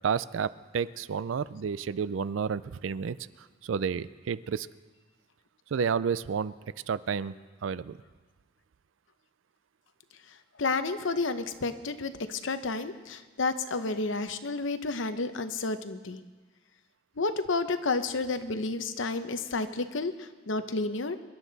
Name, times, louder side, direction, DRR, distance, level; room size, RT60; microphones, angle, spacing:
voice 1, 0.0-3.2 3.6-4.7 5.7-6.5 6.9-7.4 7.6-8.0, right 6 dB, 75° right, 17 dB, 0.4 m, -30 dB
voice 2, 10.6-16.2 17.2-21.2, left 3 dB, 70° left, 10 dB, 0.8 m, -31 dB
25.0 x 11.5 x 4.0 m, 1.4 s
head